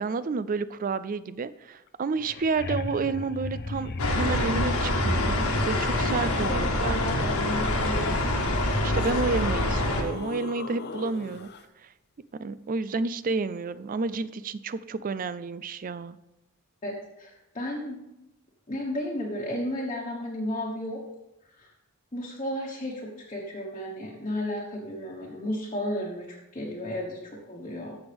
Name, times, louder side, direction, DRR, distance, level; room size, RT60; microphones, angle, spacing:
voice 1, 0.0-7.0 8.8-11.5 11.8-11.9 12.4-16.2, right 4 dB, 40° right, 15 dB, 0.4 m, -30 dB
sound 1, 1.9-5.3 7.7-7.8 8.5-11.6 14.1-14.2, left 3 dB, 50° left, 0.6 m, -37 dB
sound 2, 4.0-10.0, left 1 dB, 85° left, 1.6 m, -25 dB
voice 2, 6.5-8.4 16.8-18.3 18.7-21.0 21.6-21.7 22.1-26.3 26.5-27.9, left 1 dB, 30° left, -4 dB, 1.3 m, -33 dB
14.5 x 6.1 x 3.5 m, 0.93 s
head